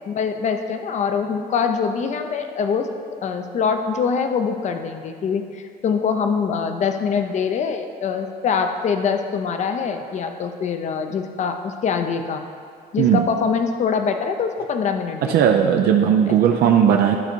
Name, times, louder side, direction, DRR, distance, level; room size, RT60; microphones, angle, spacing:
voice 1, 0.1-2.9 3.2-12.4 12.9-15.5 16.3-16.4, left 6 dB, 45° left, 6 dB, 0.6 m, -24 dB
voice 2, 15.2-17.2, right 8 dB, 70° right, 2 dB, 0.6 m, -17 dB
12.0 x 4.0 x 4.5 m, 2.3 s
cardioid pair, 110°, 17 cm